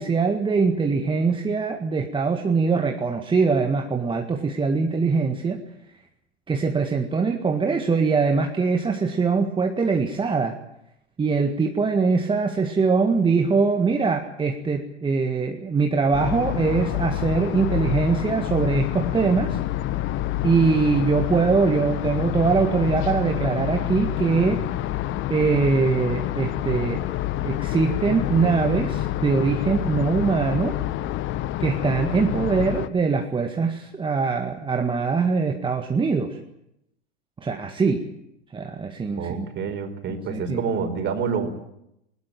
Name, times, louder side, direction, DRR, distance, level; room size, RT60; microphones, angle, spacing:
voice 1, 0.0-5.6 6.5-10.6 11.2-19.6 20.4-24.6 25.3-27.0 27.4-30.8 31.6-36.4 37.4-38.1 38.5-39.5 40.3-40.6, right 4 dB, 15° right, 5 dB, 1.8 m, -22 dB
sound 1, 16.1-32.9, left 14 dB, 35° left, 1.3 m, -27 dB
voice 2, 39.2-41.6, right 5 dB, 30° right, 8 dB, 4.8 m, -27 dB
20.5 x 20.5 x 9.1 m, 0.80 s
figure-of-eight pair, 95°, 34 cm